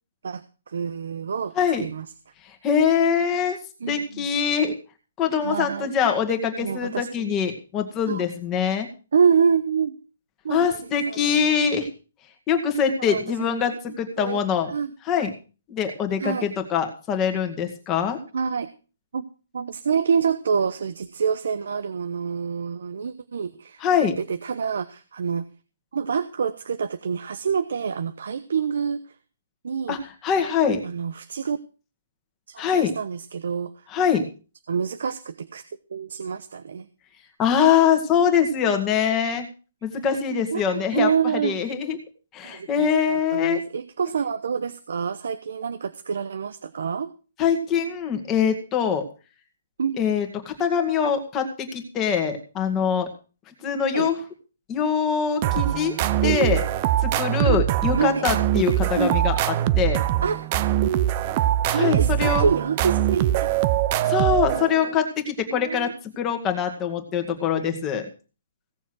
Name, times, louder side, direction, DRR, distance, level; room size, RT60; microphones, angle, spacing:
voice 1, 0.7-2.1 3.8-4.3 5.4-5.9 6.6-7.3 8.1-8.3 9.1-10.0 10.4-10.7 11.1-11.5 13.1-13.2 14.2-14.4 14.7-14.9 16.2-16.5 18.3-18.7 19.1-19.2 19.5-23.8 24.3-25.4 25.9-29.0 29.6-30.0 30.8-31.6 32.5-33.7 34.7-35.6 35.9-36.9 40.0-40.2 40.5-41.7 42.4-47.1 49.8-50.0 53.9-54.1 56.2-56.6 57.4-57.6 58.0-58.3 59.0-59.2 60.2-60.4 61.7-63.5 65.5-65.9, right 6 dB, 65° right, 11 dB, 1.0 m, -26 dB
voice 2, 1.6-1.9 2.6-3.6 3.9-4.7 5.2-8.9 10.5-11.9 12.5-14.7 15.1-15.3 15.7-18.2 23.8-24.1 29.9-30.8 32.6-32.9 33.9-34.2 37.4-39.5 39.8-41.1 41.4-42.0 42.3-43.6 47.4-49.0 50.0-53.1 53.6-54.2 54.7-56.0 56.2-56.6 57.0-60.0 61.7-62.5 64.1-68.1, left 7 dB, 15° left, 5 dB, 2.0 m, -23 dB
sound 1, 55.4-64.9, right 12 dB, 25° right, 0.6 m, -22 dB
17.0 x 7.1 x 6.2 m, 0.35 s
hypercardioid pair, 170°, 0 cm